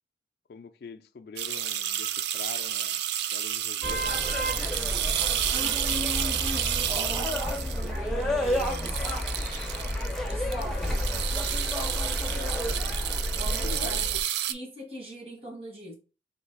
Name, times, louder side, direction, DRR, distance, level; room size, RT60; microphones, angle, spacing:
voice 1, 0.5-3.0 3.3-4.2 12.3-12.7 13.6-14.3, left 4 dB, 55° left, 0.3 m, -43 dB
sound 1, 1.4-14.5, right 11 dB, 70° right, 0.3 m, -31 dB
sound 2, 3.8-14.2, left 1 dB, 5° left, 0.5 m, -30 dB
voice 2, 5.5-9.2 10.3-11.0 13.3-14.1 14.5-16.0, equal, 35° right, 1.3 m, -40 dB
3.2 x 2.8 x 4.6 m
head